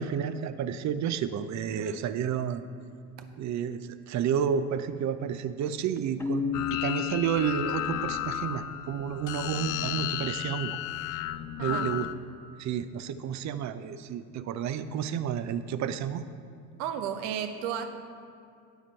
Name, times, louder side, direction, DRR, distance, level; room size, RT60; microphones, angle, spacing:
voice 1, 0.0-2.6 3.4-10.8 11.6-12.1 12.6-16.2, right 8 dB, 45° right, 12 dB, 0.6 m, -31 dB
voice 2, 1.7-2.1 11.6-11.9 16.8-17.9, right 9 dB, 70° right, 7 dB, 1.0 m, -34 dB
Keyboard (musical), 6.2-8.8, left 6 dB, 5° left, 0.7 m, -34 dB
sound 1, 6.5-12.1, left 13 dB, 50° left, 0.5 m, -34 dB
9.7 x 7.9 x 4.5 m, 2.3 s
hypercardioid pair, 70°, 41 cm